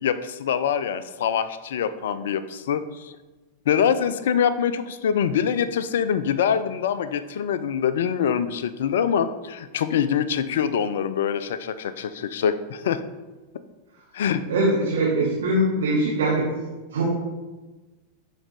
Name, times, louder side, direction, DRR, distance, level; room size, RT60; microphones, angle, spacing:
voice 1, 0.0-3.1 3.7-13.0 14.1-14.4, left 8 dB, 60° left, 13 dB, 0.4 m, -24 dB
voice 2, 14.5-16.5 16.9-17.0, right 1 dB, 60° right, -5 dB, 1.5 m, -22 dB
11.0 x 4.1 x 3.5 m, 1.2 s
figure-of-eight pair, 90°, 0 cm